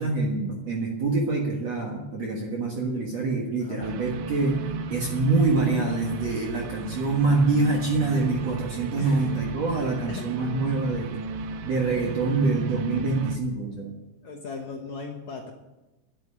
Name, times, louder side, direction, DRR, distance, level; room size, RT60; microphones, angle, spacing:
voice 1, 0.0-4.6 4.9-11.2 11.6-14.0, right 3 dB, 55° right, -1 dB, 2.1 m, -25 dB
voice 2, 3.6-4.0 9.0-9.4 10.1-10.2 14.2-15.5, left 5 dB, 65° left, 1 dB, 1.8 m, -37 dB
sound 1, 3.8-13.4, right 3 dB, 75° right, 2.3 m, -34 dB
10.5 x 8.3 x 9.8 m, 1.0 s
omnidirectional pair, 4.8 m